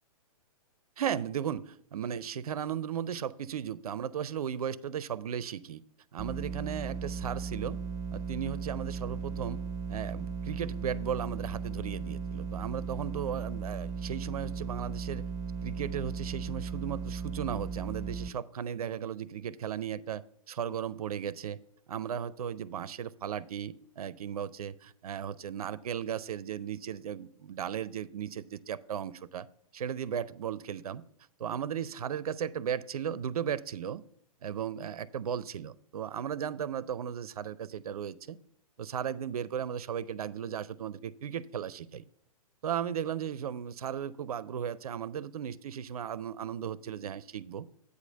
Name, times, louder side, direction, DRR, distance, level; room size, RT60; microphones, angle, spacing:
voice 1, 1.0-5.8 6.1-7.8 8.1-9.6 9.9-15.2 15.6-21.6 21.9-29.5 29.7-31.0 31.4-34.0 34.4-38.4 38.8-42.0 42.6-47.7, right 8 dB, 75° right, 19 dB, 0.4 m, -36 dB
sound 1, 6.2-18.3, right 5 dB, 20° right, 0.5 m, -37 dB
8.2 x 4.9 x 5.3 m, 0.65 s
hypercardioid pair, 120°, 19 cm